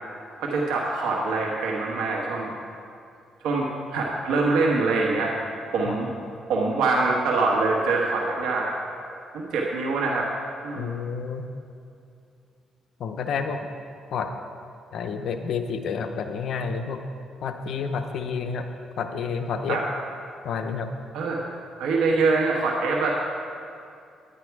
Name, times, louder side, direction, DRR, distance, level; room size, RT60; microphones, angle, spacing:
voice 1, 0.4-2.5 3.4-5.3 5.7-6.1 6.5-8.8 9.3-10.3 10.6-11.0 19.7-19.8 21.1-21.5 21.8-23.1, right 3 dB, 90° right, -2 dB, 1.3 m, -24 dB
voice 2, 10.8-11.5 13.0-13.6 14.1-14.3 14.9-17.0 17.4-18.7 19.0-19.8 20.4-20.9, left 6 dB, 70° left, 6 dB, 0.7 m, -29 dB
10.5 x 10.0 x 4.7 m, 2.5 s
cardioid pair, 90°, 0 cm